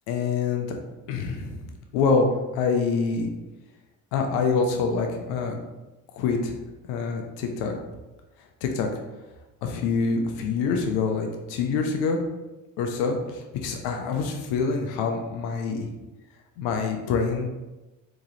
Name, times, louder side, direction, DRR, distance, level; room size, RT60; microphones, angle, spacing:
voice 1, 0.1-0.7 1.1-3.3 4.1-5.6 6.2-6.5 6.9-7.8 8.6-8.9 9.6-12.2 12.8-15.9 16.6-17.6, left 4 dB, 75° left, 3 dB, 0.7 m, -26 dB
3.5 x 3.0 x 2.8 m, 1.1 s
hypercardioid pair, 65°, 38 cm